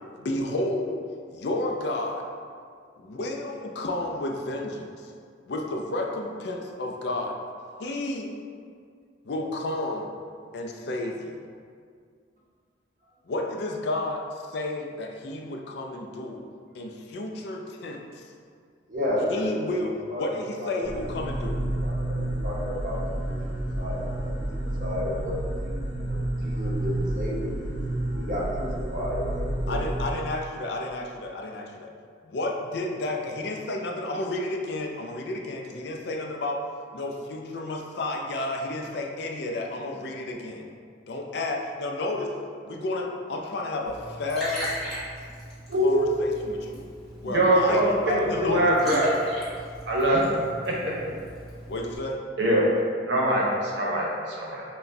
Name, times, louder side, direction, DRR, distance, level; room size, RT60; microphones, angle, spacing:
voice 1, 0.2-1.0 1.3-2.2 3.0-5.1 5.5-7.4 7.8-8.3 9.2-10.1 10.5-11.4 13.3-16.4 16.7-18.2 19.3-19.9 20.2-21.6 29.7-31.9 32.2-36.6 36.9-40.7 41.1-42.3 42.6-44.7 45.8-46.9 47.2-48.7 51.7-52.2, left 2 dB, 60° left, 1 dB, 0.4 m, -31 dB
voice 2, 18.9-20.3 20.6-20.9 21.8-23.0 23.3-25.7 26.1-29.8, equal, 45° right, -5 dB, 0.7 m, -33 dB
sound 1, 20.8-30.1, right 1 dB, 30° left, 0.7 m, -30 dB
Liquid, 43.8-51.9, equal, 5° left, 0.9 m, -39 dB
voice 3, 45.7-46.2 47.2-49.1 49.9-50.2 50.7-50.9 52.4-52.7 53.1-54.6, right 1 dB, 70° right, -4 dB, 0.8 m, -23 dB
5.7 x 2.2 x 2.6 m, 2.2 s
head